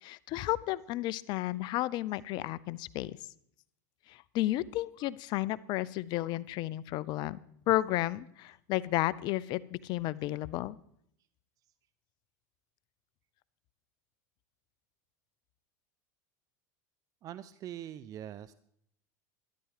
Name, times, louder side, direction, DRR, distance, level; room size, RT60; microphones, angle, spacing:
voice 1, 0.0-3.1 4.1-7.4 7.7-10.8, left 16 dB, 55° left, 19 dB, 0.7 m, -32 dB
voice 2, 17.2-18.5, right 11 dB, 40° right, 16 dB, 0.6 m, -43 dB
12.5 x 12.0 x 4.9 m, 0.68 s
hypercardioid pair, 100°, 9 cm